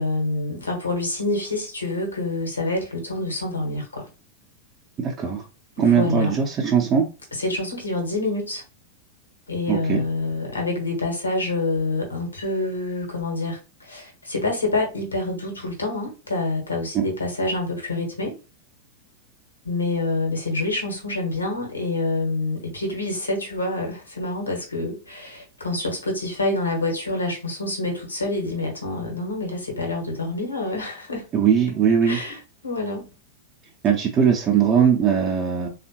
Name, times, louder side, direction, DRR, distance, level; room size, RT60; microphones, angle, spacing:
voice 1, 0.0-4.0 5.9-6.3 7.3-8.6 9.5-18.3 19.6-31.3 32.1-32.4 32.6-33.1, left 2 dB, 80° left, 1.2 m, -27 dB
voice 2, 5.0-5.5 5.8-7.0 9.7-10.0 16.9-17.0 31.3-32.2 33.8-35.7, right 7 dB, 30° right, 0.7 m, -20 dB
3.5 x 2.4 x 2.9 m
figure-of-eight pair, 90°, 0 cm